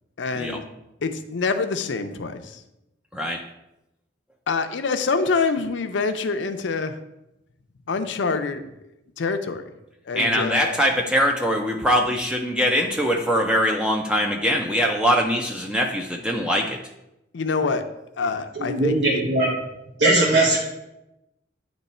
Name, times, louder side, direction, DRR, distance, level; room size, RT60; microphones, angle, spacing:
voice 1, 0.2-0.6 1.0-2.6 4.5-6.9 7.9-8.6 9.2-9.7 10.1-10.8 17.3-17.8 18.2-19.2, left 4 dB, 80° left, 8 dB, 0.6 m, -26 dB
voice 2, 3.1-3.4 10.2-16.8, equal, 5° right, 2 dB, 0.4 m, -22 dB
voice 3, 18.5-19.6 20.0-20.6, right 2 dB, 75° right, -4 dB, 1.1 m, -19 dB
9.1 x 3.0 x 4.2 m, 0.90 s
head